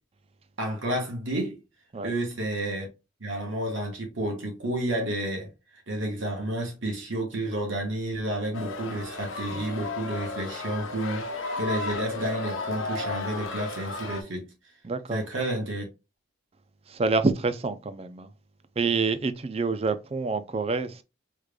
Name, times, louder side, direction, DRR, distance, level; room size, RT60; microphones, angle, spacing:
voice 1, 0.6-1.6 2.0-2.9 3.2-5.5 5.9-14.5 15.1-15.8, right 1 dB, 70° right, 1.2 m, -30 dB
sound 1, 8.5-14.2, left 3 dB, 75° left, 1.0 m, -34 dB
voice 2, 14.8-15.2 16.9-18.3 18.8-21.0, right 4 dB, 30° right, 0.4 m, -27 dB
5.0 x 3.2 x 2.2 m
head